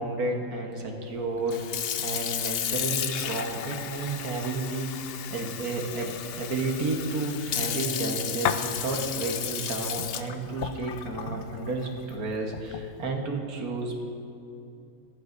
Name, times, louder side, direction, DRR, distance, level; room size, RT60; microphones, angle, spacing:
voice 1, 0.0-4.9 5.3-14.0, right 2 dB, 85° right, 1 dB, 1.7 m, -31 dB
Sink (filling or washing) / Fill (with liquid), 1.4-12.9, left 9 dB, 70° left, 0.5 m, -33 dB
18.5 x 11.5 x 2.6 m, 2.6 s
omnidirectional pair, 1.5 m